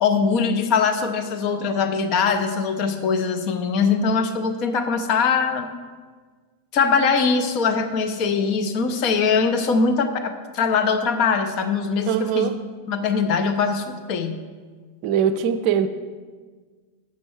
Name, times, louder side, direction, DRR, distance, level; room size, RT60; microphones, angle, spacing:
voice 1, 0.0-5.7 6.7-12.5 12.9-14.4, left 5 dB, 40° left, 7 dB, 0.6 m, -22 dB
voice 2, 12.1-12.6 15.0-15.9, right 8 dB, 45° right, 9 dB, 0.4 m, -21 dB
7.1 x 6.2 x 4.4 m, 1.5 s
figure-of-eight pair, 90°, 0 cm